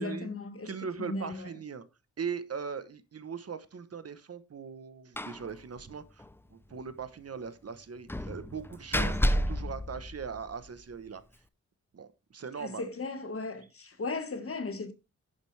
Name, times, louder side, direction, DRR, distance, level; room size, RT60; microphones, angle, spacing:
voice 1, 0.0-0.7 1.0-1.5 12.6-14.9, left 3 dB, 45° left, 1.7 m, -36 dB
voice 2, 0.6-1.8 2.2-6.2 6.5-11.2 11.9-12.9, right 6 dB, 55° right, 1.1 m, -40 dB
Slam, 5.2-5.5 5.8-5.9 6.2-6.3 8.1-10.7, equal, 10° left, 0.6 m, -30 dB
11.0 x 9.0 x 3.3 m
wide cardioid pair, 135°, 30 cm